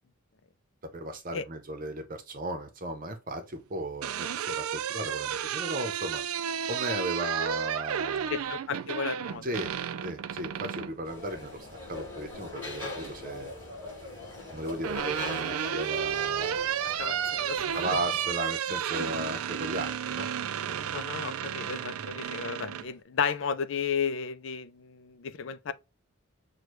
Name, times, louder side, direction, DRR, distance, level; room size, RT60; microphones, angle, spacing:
voice 1, 0.9-6.2 6.7-8.4 9.4-9.7 10.0-13.5 14.5-16.7 17.7-20.3 20.7-21.0, right 1 dB, 40° right, 0.7 m, -36 dB
sound 1, 3.7-11.0 12.4-13.1 14.3-22.9, right 9 dB, 90° right, 0.4 m, -32 dB
voice 2, 8.3-9.5 17.0-18.0 20.9-25.7, left 6 dB, 65° left, 0.4 m, -33 dB
sound 2, 11.0-18.3, left 2 dB, 10° left, 2.4 m, -41 dB
6.3 x 2.3 x 3.1 m
head